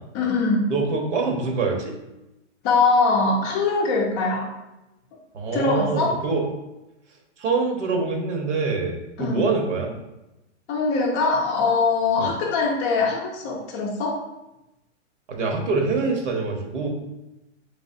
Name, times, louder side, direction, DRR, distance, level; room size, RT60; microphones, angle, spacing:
voice 1, 0.1-0.7 2.6-4.5 5.5-6.2 9.2-9.5 10.7-14.3, left 3 dB, 25° left, 0 dB, 0.5 m, -22 dB
voice 2, 0.7-1.9 5.3-6.4 7.4-10.0 12.2-12.3 15.3-16.9, right 4 dB, 75° right, 1 dB, 1.2 m, -25 dB
4.0 x 3.3 x 2.7 m, 0.94 s
hypercardioid pair, 135°, 36 cm